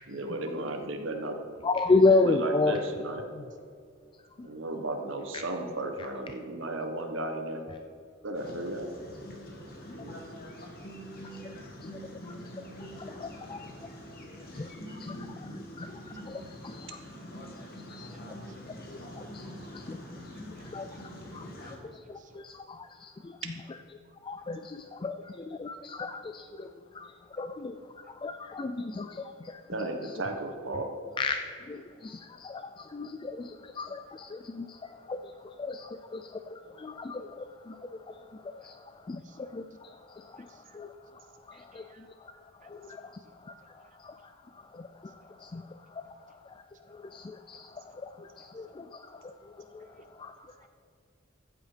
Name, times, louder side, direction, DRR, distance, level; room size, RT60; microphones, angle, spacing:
voice 1, 0.1-1.4 2.2-3.2 4.4-7.6 8.2-8.9 9.9-10.2 29.7-30.9, right 1 dB, 65° right, 4 dB, 1.3 m, -34 dB
voice 2, 1.6-2.8 3.4-3.5 4.4-4.5 5.3-5.4 11.3-11.5 11.8-11.9 12.3-12.6 12.9-13.7 14.5-15.9 16.3-17.0 17.9-18.2 18.9-19.5 19.7-20.0 20.5-23.5 24.2-26.7 26.9-29.8 31.2-41.2 41.5-42.3 42.6-46.1 46.5-46.6 46.9-49.9 50.1-50.3, left 3 dB, 25° left, 7 dB, 0.3 m, -34 dB
sound 1, 8.3-21.8, equal, 45° left, 1.7 m, -44 dB
voice 3, 17.6-19.0 19.6-19.8 20.3-22.7 23.2-23.3 24.4-24.5 27.7-27.8 32.5-32.7 36.9-37.0 39.2-39.4 40.4-40.8 41.5-42.1 42.6-43.3 43.8-43.9 45.4-45.5 46.0-46.2 48.7-48.8 49.8-50.0 50.4-50.7, right 5 dB, 40° right, 6 dB, 0.9 m, -63 dB
14.5 x 8.2 x 5.0 m, 2.3 s
head